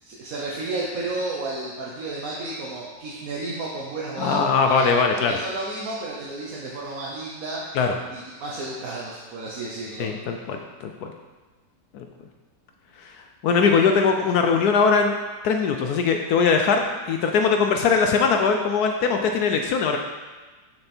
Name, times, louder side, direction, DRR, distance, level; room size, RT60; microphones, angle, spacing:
voice 1, 0.0-7.8 8.1-10.1, right 2 dB, 55° right, -5 dB, 1.3 m, -32 dB
voice 2, 4.2-5.4 7.7-8.0 10.0-11.1 11.9-12.1 13.0-13.1 13.4-15.1 15.4-20.0, left 5 dB, 70° left, 4 dB, 1.0 m, -21 dB
6.4 x 6.0 x 4.3 m, 1.3 s
omnidirectional pair, 1.9 m